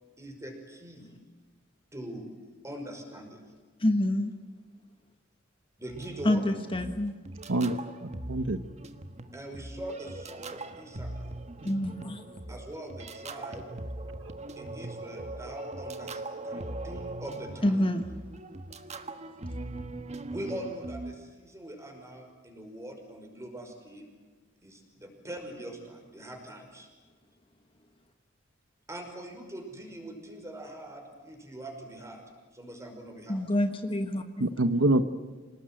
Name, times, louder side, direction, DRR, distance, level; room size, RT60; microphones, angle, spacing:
voice 1, 0.2-1.1 1.9-2.3 2.6-3.4 5.8-6.4 9.3-11.3 12.5-13.7 14.6-17.8 20.3-24.1 24.6-26.9 28.9-32.2 32.5-33.5, right 1 dB, 15° right, 3 dB, 5.6 m, -42 dB
voice 2, 3.8-4.3 6.2-7.1 11.6-12.2 17.6-18.0 33.3-34.5, left 1 dB, 25° left, 7 dB, 1.3 m, -27 dB
sound 1, 5.9-21.1, right 2 dB, 35° right, 1.5 m, -41 dB
voice 3, 7.5-8.6 34.4-35.0, right 1 dB, 75° right, 10 dB, 1.2 m, -26 dB
28.0 x 19.0 x 9.2 m, 1.4 s
head